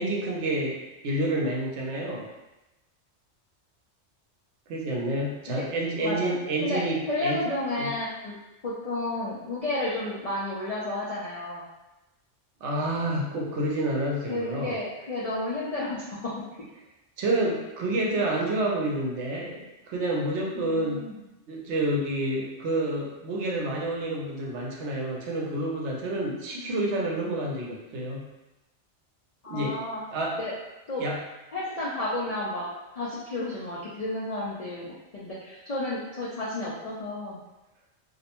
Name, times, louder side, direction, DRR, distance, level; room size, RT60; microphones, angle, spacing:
voice 1, 0.0-2.3 4.7-7.4 7.8-7.9 12.6-14.7 17.2-21.1 21.5-28.3 29.5-29.8 30.1-30.4 31.0-31.2, right 1 dB, 75° right, -2 dB, 0.9 m, -29 dB
voice 2, 6.0-6.4 6.6-8.3 8.6-11.6 14.3-16.4 20.5-21.2 29.4-30.0 30.4-30.5 30.9-31.1 31.5-32.7 32.9-37.4, left 2 dB, 65° left, -7 dB, 0.3 m, -32 dB
2.5 x 2.1 x 2.9 m, 0.99 s
omnidirectional pair, 1.2 m